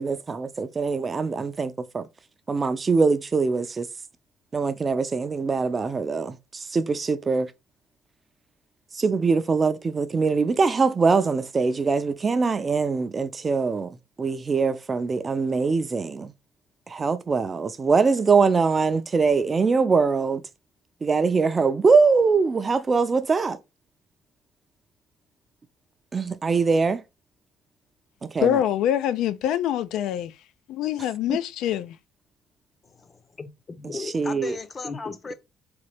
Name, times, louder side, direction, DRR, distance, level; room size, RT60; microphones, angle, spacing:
voice 1, 0.0-2.1 2.5-3.9 4.5-7.5 8.9-16.3 16.9-20.4 21.0-23.6 26.1-27.0 28.2-28.6 31.3-31.4 33.8-34.6, right 4 dB, 25° right, 0.4 m, -23 dB
voice 2, 28.4-30.3 30.7-31.9, left 11 dB, 85° left, 0.4 m, -25 dB
voice 3, 32.8-35.3, left 4 dB, 30° left, 0.6 m, -36 dB
3.9 x 3.2 x 3.3 m
cardioid pair, 150°, 0 cm